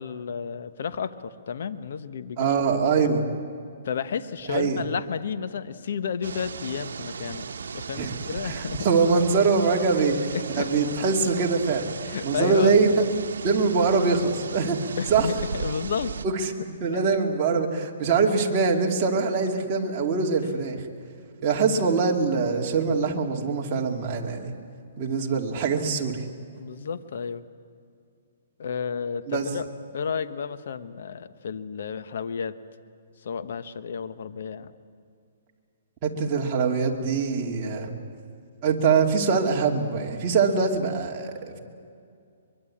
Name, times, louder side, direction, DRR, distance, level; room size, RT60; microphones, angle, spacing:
voice 1, 0.0-2.5 3.8-7.5 7.7-8.9 10.3-10.7 12.0-12.7 15.0-16.1 26.5-27.4 28.6-29.7 29.9-32.6 33.2-34.7 40.2-40.3, left 6 dB, 65° left, 12 dB, 1.2 m, -32 dB
voice 2, 2.4-3.2 4.5-4.8 8.0-8.1 8.4-11.9 12.2-13.0 13.4-15.3 16.2-20.8 21.4-24.5 25.0-26.2 29.3-29.5 36.0-37.9 38.6-41.6, right 4 dB, 30° right, -1 dB, 2.7 m, -23 dB
sound 1, 6.2-16.3, right 5 dB, 85° right, 1.1 m, -36 dB
23.5 x 23.0 x 8.8 m, 2.4 s
hypercardioid pair, 160°, 0 cm